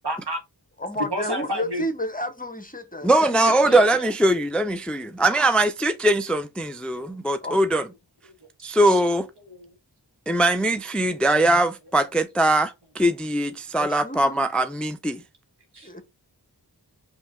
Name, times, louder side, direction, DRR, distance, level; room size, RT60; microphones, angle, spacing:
voice 1, 0.0-0.4 1.1-1.9 3.6-4.1 7.0-7.2 8.2-8.3 8.9-9.0 9.4-9.7 11.2-11.3 13.5-13.6 15.7-15.9, right 1 dB, 70° right, 1.5 m, -32 dB
voice 2, 0.8-4.0 7.4-7.6 13.8-14.4 15.8-16.0, equal, 20° left, 0.9 m, -32 dB
voice 3, 3.0-7.8 8.6-9.3 10.3-15.2, right 1 dB, 5° left, 0.4 m, -21 dB
5.0 x 2.9 x 3.6 m
wide cardioid pair, 45°, 42 cm